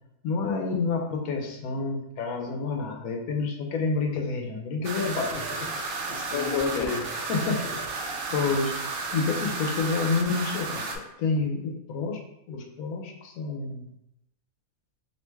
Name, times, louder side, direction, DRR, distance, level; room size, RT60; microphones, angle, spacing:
voice 1, 0.2-5.5 6.3-6.9 7.3-7.6 8.3-12.2 12.5-13.9, left 4 dB, 90° left, 2 dB, 1.1 m, -29 dB
sound 1, 4.8-11.0, right 3 dB, 65° right, 0.6 m, -33 dB
voice 2, 5.3-7.1 7.4-8.5, left 5 dB, 65° left, 3 dB, 0.7 m, -36 dB
3.1 x 2.9 x 3.3 m, 0.82 s
omnidirectional pair, 1.5 m